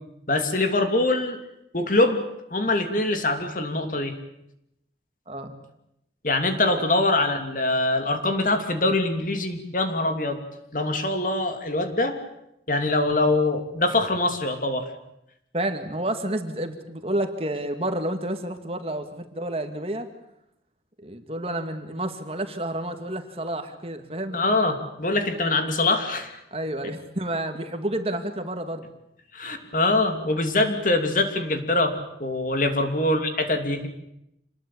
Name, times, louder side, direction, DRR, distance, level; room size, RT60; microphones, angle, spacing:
voice 1, 0.3-1.4 1.7-2.2 2.5-4.1 6.2-10.4 10.7-12.2 12.7-14.9 24.3-26.4 29.3-31.9 32.2-33.9, left 2 dB, 45° left, 6 dB, 3.0 m, -23 dB
voice 2, 15.5-20.1 21.0-24.4 26.5-28.9 30.8-31.3 32.7-32.8, right 1 dB, 35° right, 7 dB, 2.2 m, -30 dB
27.0 x 20.5 x 8.7 m, 0.82 s
head